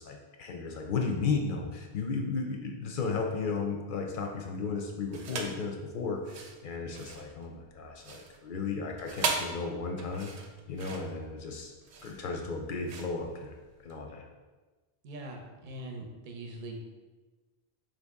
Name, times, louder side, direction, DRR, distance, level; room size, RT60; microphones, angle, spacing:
voice 1, 0.0-10.3 10.7-11.7 12.0-14.3, left 4 dB, 60° left, 2 dB, 0.6 m, -34 dB
sound 1, 5.1-5.6 6.2-14.0, right 4 dB, 80° right, 0.8 m, -38 dB
voice 2, 15.0-16.8, right 1 dB, 55° right, 2 dB, 0.7 m, -42 dB
4.8 x 2.7 x 3.4 m, 1.3 s
omnidirectional pair, 1.1 m